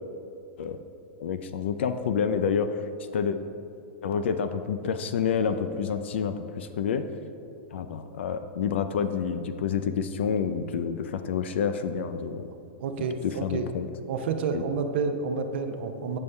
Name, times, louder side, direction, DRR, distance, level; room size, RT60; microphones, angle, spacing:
voice 1, 1.2-2.7 3.1-3.4 4.0-7.1 7.7-12.5 13.2-13.9 14.5-14.6, left 7 dB, 75° left, 10 dB, 0.4 m, -28 dB
voice 2, 12.8-13.7 14.1-16.2, right 5 dB, 65° right, 6 dB, 0.6 m, -29 dB
8.2 x 5.4 x 3.3 m, 2.7 s
hypercardioid pair, 135°, 6 cm